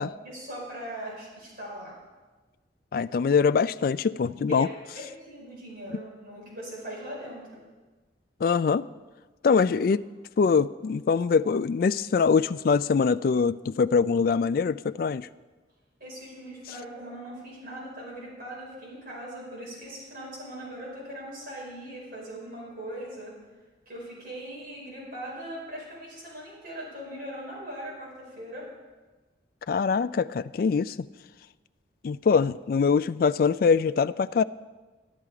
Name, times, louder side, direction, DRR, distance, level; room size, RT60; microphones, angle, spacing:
voice 1, 0.2-1.9 4.5-7.6 16.0-23.3 23.8-28.7, right 1 dB, 55° right, -5 dB, 5.1 m, -40 dB
voice 2, 2.9-4.7 8.4-8.9 9.4-10.0 10.4-15.3 29.7-31.0 32.0-34.4, left 5 dB, 50° left, 14 dB, 0.3 m, -23 dB
12.5 x 12.0 x 4.8 m, 1.3 s
head